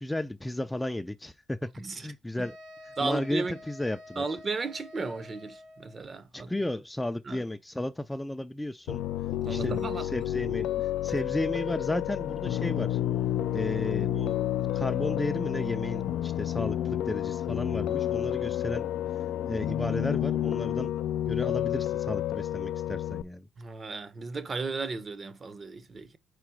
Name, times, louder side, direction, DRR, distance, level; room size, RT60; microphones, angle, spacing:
voice 1, 0.0-1.7 2.0-2.6 2.8-4.3 6.3-9.0 9.4-13.0 13.5-14.4 14.7-18.9 19.5-21.0 21.3-23.5, left 1 dB, 10° left, 0.5 m, -33 dB
voice 2, 1.8-2.1 2.4-2.5 3.0-3.6 4.2-6.5 7.3-7.4 9.5-10.1 23.6-26.2, right 4 dB, 35° right, 1.0 m, -34 dB
sound 1, 2.4-6.0, left 2 dB, 85° right, 3.4 m, -49 dB
Piano, 8.9-23.2, left 12 dB, 85° left, 0.5 m, -30 dB
sound 2, 12.2-20.8, left 7 dB, 70° left, 0.8 m, -43 dB
5.0 x 4.7 x 4.6 m
cardioid pair, 90°, 0 cm